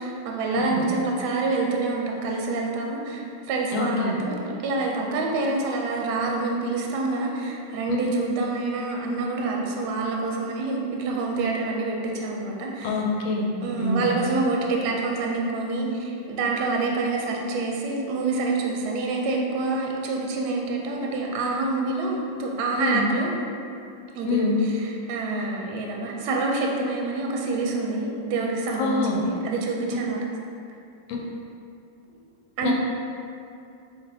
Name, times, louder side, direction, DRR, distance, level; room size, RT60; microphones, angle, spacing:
voice 1, 0.0-4.3 4.6-12.9 13.6-23.4 24.1-30.2 32.6-32.7, right 3 dB, 75° right, -1 dB, 1.0 m, -27 dB
voice 2, 3.7-4.2 12.8-13.5 13.8-14.1 22.8-23.0 24.2-24.6 28.8-29.2 32.6-32.7, left 3 dB, 80° left, -1 dB, 1.3 m, -25 dB
5.3 x 2.5 x 2.7 m, 2.5 s
omnidirectional pair, 2.1 m